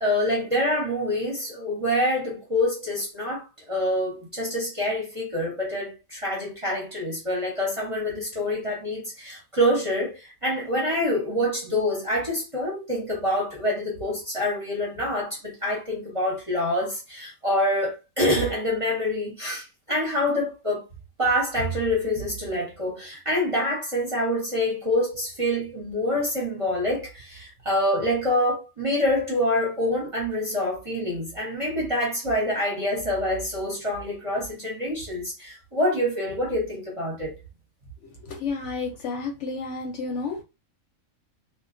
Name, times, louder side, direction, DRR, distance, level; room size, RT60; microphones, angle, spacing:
voice 1, 0.0-20.8 21.2-37.4, left 1 dB, 30° right, 0.7 m, -26 dB
voice 2, 38.2-40.4, left 4 dB, 65° left, 0.8 m, -31 dB
2.2 x 2.2 x 2.5 m
omnidirectional pair, 1.5 m